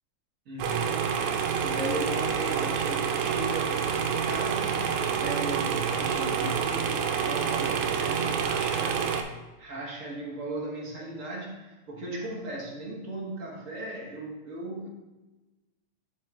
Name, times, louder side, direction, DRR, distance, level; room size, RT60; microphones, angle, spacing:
voice 1, 0.5-1.2 1.6-4.8 5.0-9.0 9.6-14.9, right 1 dB, 65° right, -2 dB, 0.8 m, -37 dB
sound 1, 0.6-9.2, right 7 dB, 85° right, 2.1 m, -28 dB
10.5 x 4.5 x 3.3 m, 1.1 s
omnidirectional pair, 3.4 m